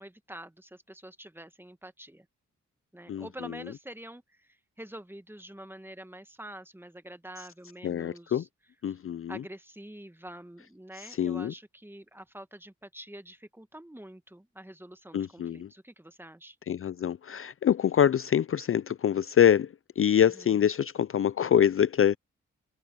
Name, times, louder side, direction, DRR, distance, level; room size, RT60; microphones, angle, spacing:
voice 1, 0.0-2.2 2.9-4.2 4.8-8.5 9.3-16.5, right 1 dB, 5° right, 1.7 m, -46 dB
voice 2, 3.1-3.7 7.8-8.4 8.8-9.4 10.9-11.5 15.1-15.7 16.7-22.2, left 9 dB, 45° left, 0.4 m, -25 dB
cardioid pair, 55°, 30 cm